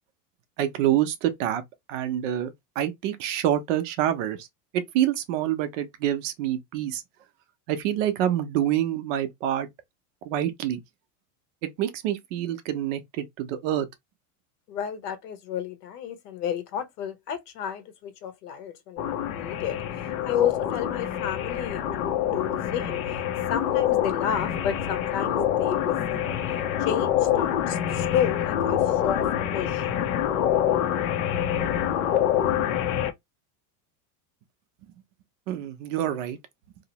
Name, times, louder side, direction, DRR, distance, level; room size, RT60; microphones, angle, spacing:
voice 1, 0.6-1.6 1.9-4.5 4.9-7.0 7.7-9.7 10.3-10.8 11.6-13.9 35.5-36.4, right 11 dB, 55° right, 0.6 m, -27 dB
voice 2, 14.7-19.8 20.2-23.2 23.5-26.3 26.8-29.3 29.5-29.9, left 9 dB, 90° left, 1.0 m, -31 dB
sound 1, 19.0-33.1, left 10 dB, 60° left, 0.5 m, -26 dB
2.8 x 2.0 x 2.7 m
supercardioid pair, 180°, 46 cm